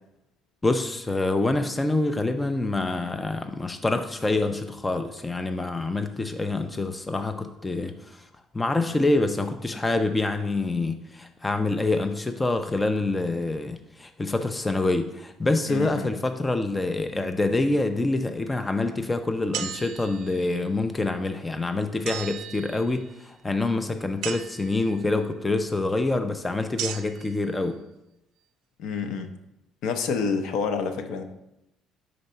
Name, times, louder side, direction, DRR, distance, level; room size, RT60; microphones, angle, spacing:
voice 1, 0.6-8.3 8.5-27.8, left 2 dB, 10° left, 7 dB, 0.3 m, -26 dB
voice 2, 15.7-16.1 28.8-29.3 29.8-31.2, left 5 dB, 65° left, 7 dB, 0.6 m, -28 dB
sound 1, 19.5-20.5 22.1-23.2 24.2-25.0 26.8-27.3, right 10 dB, 80° right, 0.4 m, -36 dB
5.1 x 3.9 x 5.4 m, 0.89 s
cardioid pair, 150°, 0 cm